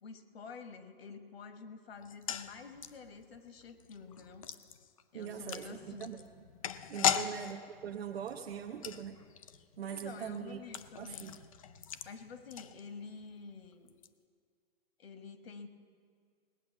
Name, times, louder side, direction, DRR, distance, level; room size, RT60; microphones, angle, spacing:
voice 1, 0.0-4.5 5.1-6.2 7.0-7.3 9.9-11.4 12.0-13.9 15.0-15.7, left 5 dB, 85° left, 8 dB, 1.4 m, -49 dB
sound 1, 2.0-13.2 13.5-13.6 13.9-14.1, left 8 dB, 35° left, 0.4 m, -39 dB
voice 2, 5.1-6.2 6.9-9.2 9.8-10.6 11.0-11.4, right 8 dB, 85° right, 2 dB, 0.9 m, -41 dB
18.5 x 8.9 x 7.1 m, 2.2 s
hypercardioid pair, 165°, 30 cm